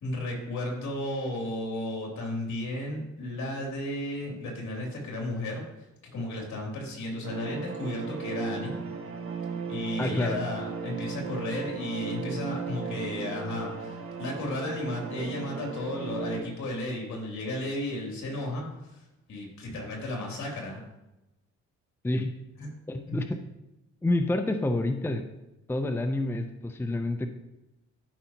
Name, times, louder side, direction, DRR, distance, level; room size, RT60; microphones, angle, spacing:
voice 1, 0.0-5.6 6.1-8.7 9.7-18.6 18.9-19.0 19.3-20.8 22.6-22.7 23.1-23.2, left 1 dB, 70° left, -1 dB, 2.9 m, -34 dB
sound 1, 7.2-16.4, right 4 dB, 45° right, 1.4 m, -36 dB
voice 2, 10.0-10.4 22.0-22.4 22.9-23.4 24.0-25.3 25.7-27.3, left 2 dB, 10° left, 7 dB, 0.6 m, -28 dB
12.5 x 5.5 x 2.9 m, 0.95 s
cardioid pair, 90°, 30 cm